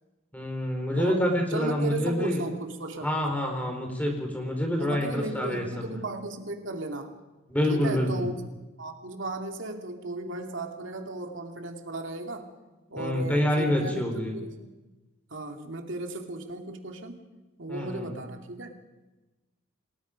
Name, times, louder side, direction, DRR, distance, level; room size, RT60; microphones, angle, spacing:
voice 1, 0.3-2.4 3.0-6.0 7.5-8.3 13.0-14.3 17.7-18.1, left 1 dB, 5° left, 2 dB, 4.3 m, -27 dB
voice 2, 1.5-3.1 4.8-7.2 7.7-8.4 8.8-12.5 12.9-14.8 15.3-17.3 17.6-18.7, right 2 dB, 65° right, 3 dB, 2.5 m, -35 dB
29.5 x 19.0 x 5.2 m, 1.1 s
head